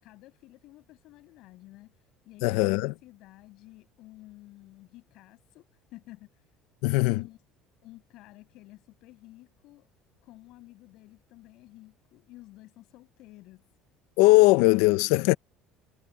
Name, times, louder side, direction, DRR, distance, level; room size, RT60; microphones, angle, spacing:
voice 1, 0.0-1.9 2.3-6.4 7.2-7.4 7.8-9.9 10.2-13.6, left 18 dB, 60° left, 6.9 m, -52 dB
voice 2, 2.4-2.9 6.8-7.2 14.2-15.3, left 21 dB, 85° left, 0.8 m, -20 dB
cardioid pair, 150°, 0 cm